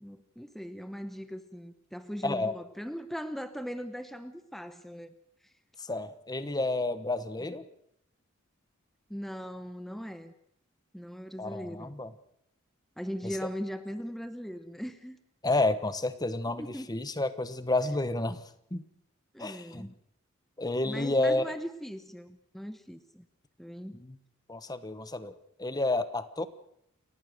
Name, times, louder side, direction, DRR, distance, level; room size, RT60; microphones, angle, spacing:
voice 1, 0.0-5.1 9.1-10.3 10.9-11.9 13.0-15.2 16.6-16.9 19.3-19.9 20.8-23.2 23.6-24.0, equal, ahead, 10 dB, 0.9 m, -39 dB
voice 2, 2.2-2.5 5.8-7.7 11.4-12.1 15.4-18.4 18.7-18.8 19.4-19.9 20.6-21.6 24.0-24.2 24.5-25.3 25.6-26.5, left 2 dB, 20° left, 13 dB, 1.1 m, -30 dB
29.0 x 14.5 x 6.5 m, 0.76 s
head